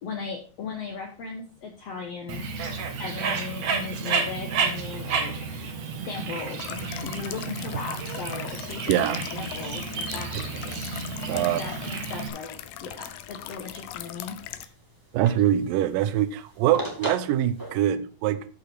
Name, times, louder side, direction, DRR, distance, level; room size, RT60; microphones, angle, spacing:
voice 1, 0.0-2.4 3.0-5.3 6.0-10.8 11.3-14.4, left 5 dB, 65° left, 1.6 m, -37 dB
Bird, 2.3-12.3, right 5 dB, 55° right, 2.6 m, -31 dB
sound 1, 6.6-14.7, left 12 dB, 80° left, 2.4 m, -39 dB
voice 2, 8.9-9.2 10.3-10.4 11.3-11.6 15.1-18.5, right 11 dB, 75° right, 2.3 m, -24 dB
sound 2, 11.0-17.8, equal, 10° right, 1.1 m, -42 dB
13.0 x 5.6 x 4.4 m
omnidirectional pair, 4.2 m